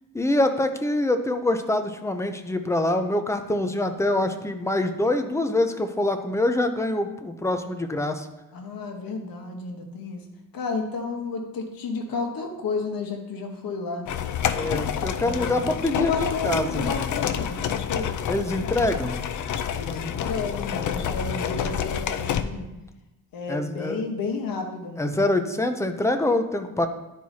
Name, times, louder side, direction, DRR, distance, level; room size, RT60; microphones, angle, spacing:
voice 1, 0.1-8.3 14.6-16.9 18.3-19.2 23.5-24.0 25.0-26.9, left 1 dB, 10° left, 7 dB, 0.4 m, -25 dB
voice 2, 8.5-10.2 10.5-14.1 15.1-18.1 19.7-22.7 23.3-25.2, left 4 dB, 80° left, 3 dB, 1.2 m, -31 dB
sound 1, 14.1-22.4, left 8 dB, 60° left, 0.5 m, -28 dB
11.0 x 4.7 x 2.7 m, 0.96 s
wide cardioid pair, 135°, 34 cm